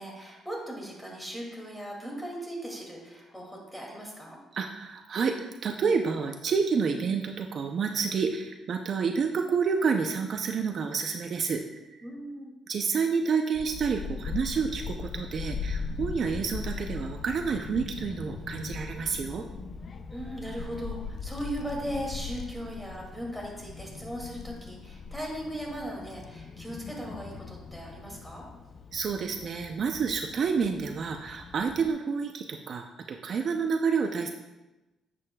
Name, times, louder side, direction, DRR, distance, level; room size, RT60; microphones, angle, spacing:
voice 1, 0.0-4.4 12.0-12.5 20.1-28.4, equal, 5° left, -1 dB, 2.3 m, -38 dB
voice 2, 4.5-12.0 12.7-19.4 28.9-34.3, right 5 dB, 50° right, 4 dB, 0.5 m, -29 dB
Child speech kid speaking / Wind, 13.5-31.9, left 5 dB, 45° left, 0.4 m, -40 dB
9.5 x 7.7 x 2.3 m, 1.0 s
cardioid pair, 110°, 0 cm